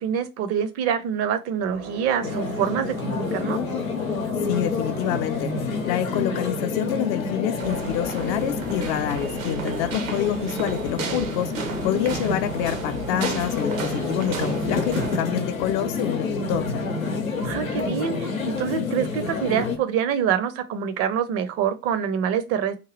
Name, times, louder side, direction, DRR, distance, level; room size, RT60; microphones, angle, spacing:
voice 1, 0.0-3.6 17.4-22.8, right 8 dB, 35° right, 0.5 m, -26 dB
sound 1, 1.6-7.7, right 2 dB, 90° right, 1.2 m, -41 dB
sound 2, 2.2-19.8, left 4 dB, 85° left, 0.7 m, -28 dB
voice 2, 4.4-16.9, left 10 dB, 45° left, 0.5 m, -27 dB
sound 3, 7.6-15.2, right 5 dB, 70° right, 0.7 m, -34 dB
2.9 x 2.3 x 3.0 m
figure-of-eight pair, 70°, 40 cm